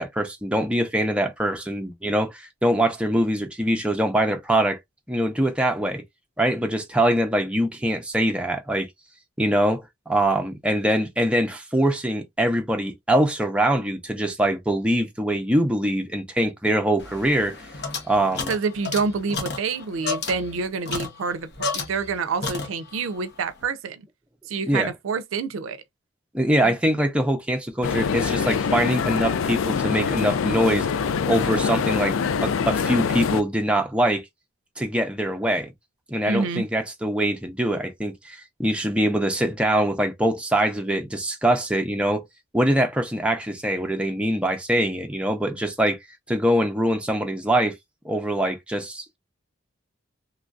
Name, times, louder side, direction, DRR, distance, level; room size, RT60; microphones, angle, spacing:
voice 1, 0.0-4.8 5.1-6.0 6.4-8.9 9.4-17.5 18.1-18.5 24.7-24.9 26.3-30.9 31.2-34.2 34.8-35.7 36.1-42.2 42.5-46.0 46.3-47.7 48.0-49.2, right 1 dB, 5° right, 0.5 m, -23 dB
sound 1, 17.0-22.2 22.4-23.1, left 4 dB, 55° left, 0.8 m, -32 dB
voice 2, 18.5-21.5 21.7-24.1 24.5-25.8 26.6-26.7 36.3-36.6, right 5 dB, 85° right, 0.4 m, -27 dB
sound 2, 27.8-33.4, left 6 dB, 90° left, 0.4 m, -24 dB
3.1 x 2.5 x 2.3 m
head